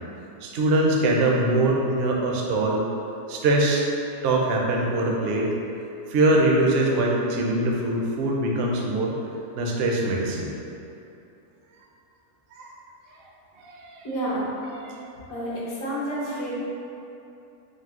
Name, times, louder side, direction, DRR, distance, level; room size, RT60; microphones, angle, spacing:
voice 1, 0.4-2.9 3.3-3.8 4.2-5.5 6.1-9.2 9.6-10.5 12.6-12.7 13.6-14.0 14.7-15.0, right 2 dB, 60° right, -1 dB, 0.6 m, -23 dB
voice 2, 14.0-14.4 15.3-16.5, right 1 dB, 70° left, -7 dB, 1.4 m, -29 dB
5.3 x 2.0 x 3.6 m, 2.9 s
omnidirectional pair, 1.5 m